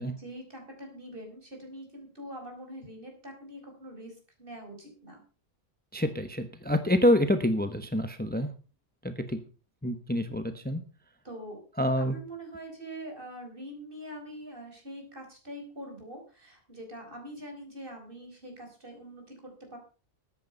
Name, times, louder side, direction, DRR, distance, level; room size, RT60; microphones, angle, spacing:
voice 1, 0.1-4.1 4.4-5.2 11.2-11.6 12.0-19.8, right 1 dB, 55° right, 3 dB, 5.0 m, -44 dB
voice 2, 5.9-8.5 9.0-9.4 9.8-10.8 11.8-12.2, left 1 dB, 10° left, 9 dB, 1.0 m, -27 dB
14.0 x 9.8 x 5.4 m, 0.37 s
omnidirectional pair, 1.1 m